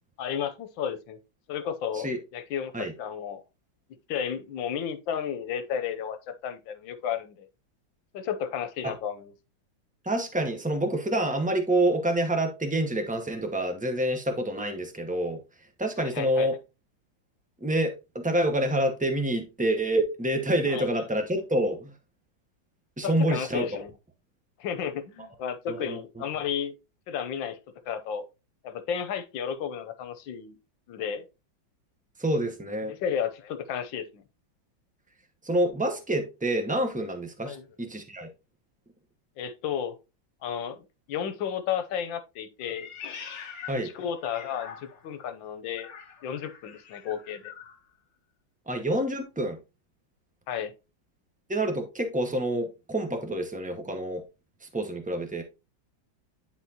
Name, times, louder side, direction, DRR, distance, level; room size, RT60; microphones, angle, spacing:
voice 1, 0.2-1.2 1.5-3.4 4.1-7.5 8.1-9.3 16.0-16.6 20.7-20.9 23.0-23.9 24.6-26.7 27.1-27.6 27.9-28.2 28.6-30.6 30.9-31.3 32.9-34.2 37.4-37.7 39.4-40.0 40.4-42.9 43.8-45.9 46.2-47.5 50.5-50.7, left 8 dB, 85° left, 1.5 m, -33 dB
voice 2, 10.0-15.4 15.8-16.6 17.6-21.9 23.0-23.7 25.7-26.0 32.2-32.9 35.4-38.3 43.7-43.9 48.7-49.6 51.5-54.2 54.6-55.4, right 1 dB, 10° right, 0.4 m, -27 dB
Meow, 42.6-45.2 45.7-47.8, left 7 dB, 55° left, 1.3 m, -44 dB
10.0 x 4.1 x 2.8 m
omnidirectional pair, 2.0 m